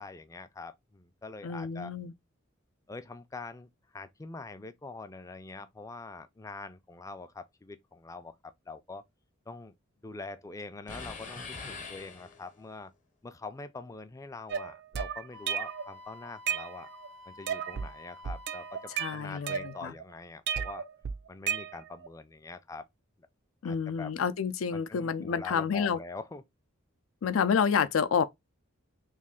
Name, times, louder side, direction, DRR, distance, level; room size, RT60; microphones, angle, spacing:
voice 1, 0.0-1.9 2.9-9.0 9.5-9.7 10.0-12.9 13.2-16.9 17.3-20.9 21.3-22.9 23.6-24.1 24.7-26.4, left 3 dB, 15° left, 0.3 m, -44 dB
voice 2, 1.4-2.1 19.0-19.9 23.6-26.0 27.2-28.2, left 6 dB, 80° left, 0.4 m, -29 dB
sound 1, 10.9-12.7, left 4 dB, 40° left, 0.8 m, -43 dB
sound 2, 14.5-15.9 16.3-17.1 17.5-17.9 18.2-20.0 20.5-22.1, right 7 dB, 55° right, 0.3 m, -34 dB
Wind instrument woodwind instrument, 15.3-19.0, left 2 dB, 85° right, 0.7 m, -50 dB
3.2 x 2.5 x 3.6 m
head